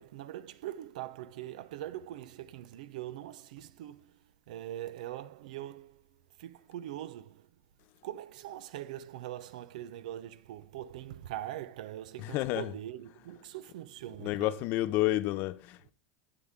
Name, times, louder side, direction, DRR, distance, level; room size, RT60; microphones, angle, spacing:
voice 1, 0.0-4.2 4.5-6.0 6.4-7.5 8.0-14.6, right 13 dB, 80° right, 0.7 m, -42 dB
voice 2, 12.2-12.7 14.2-15.9, left 16 dB, 55° left, 0.7 m, -30 dB
16.0 x 5.8 x 3.7 m
supercardioid pair, 115°, 4 cm